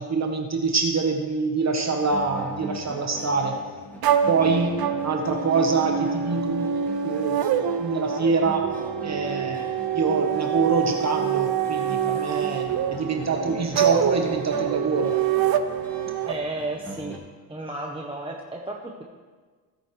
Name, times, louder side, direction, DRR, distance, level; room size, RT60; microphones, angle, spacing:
voice 1, 0.0-3.5 4.3-7.4 7.8-8.6 9.0-9.6 9.9-15.1, right 4 dB, 40° right, 3 dB, 1.1 m, -25 dB
sound 1, 2.0-17.2, equal, 5° left, 2.2 m, -39 dB
sound 2, 4.0-16.3, right 9 dB, 55° right, 0.7 m, -26 dB
voice 2, 16.3-17.2 17.5-19.0, right 2 dB, 10° right, -1 dB, 0.9 m, -33 dB
15.5 x 9.4 x 3.2 m, 1.5 s
cardioid pair, 120°, 44 cm